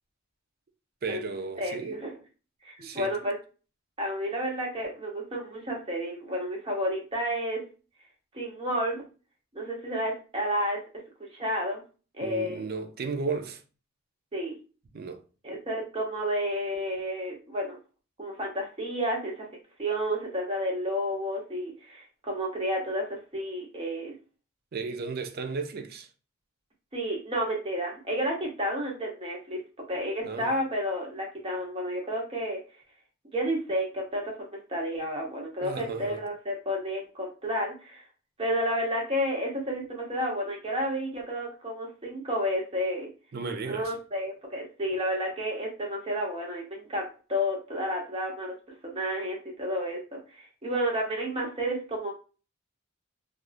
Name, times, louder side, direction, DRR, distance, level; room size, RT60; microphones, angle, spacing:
voice 1, 1.0-2.0 2.8-3.1 12.2-13.6 14.9-15.2 24.7-26.1 30.2-30.5 35.6-36.2 43.3-43.9, right 4 dB, 50° right, 0.5 m, -34 dB
voice 2, 1.6-2.2 2.6-3.3 4.0-7.6 8.3-9.1 9.5-10.8 11.3-11.8 12.1-12.7 14.3-14.6 15.4-17.8 18.2-19.4 19.8-24.1 26.9-29.6 29.9-32.6 33.3-38.0 38.4-43.1 43.6-48.5 48.8-52.1, equal, 25° right, 1.0 m, -31 dB
3.4 x 2.5 x 2.5 m
head